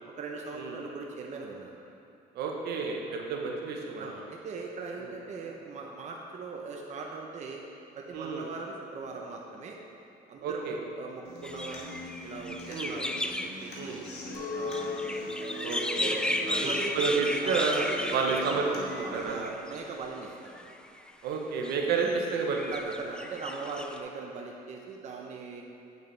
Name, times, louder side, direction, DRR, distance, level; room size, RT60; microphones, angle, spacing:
voice 1, 0.2-1.8 3.2-3.3 4.0-7.6 7.9-9.8 10.3-14.1 14.5-15.1 15.3-18.6 18.9-20.7 22.7-25.6, right 4 dB, 45° right, 0 dB, 0.7 m, -40 dB
voice 2, 2.3-4.1 5.0-5.1 8.1-8.5 10.4-10.8 12.7-12.9 13.7-14.0 15.6-16.2 16.5-18.7 19.1-19.5 21.2-22.6 22.9-23.0, right 4 dB, 75° right, 1 dB, 1.0 m, -30 dB
Human voice / Acoustic guitar, 11.2-19.2, left 1 dB, 80° left, 1.6 m, -43 dB
sound 1, 11.4-19.8 20.5-21.1 21.6-24.0, left 1 dB, 5° left, 0.3 m, -35 dB
Chink clink, 14.3-19.5, left 3 dB, 65° left, 1.1 m, -40 dB
8.4 x 6.5 x 3.4 m, 2.6 s
cardioid pair, 110°, 17 cm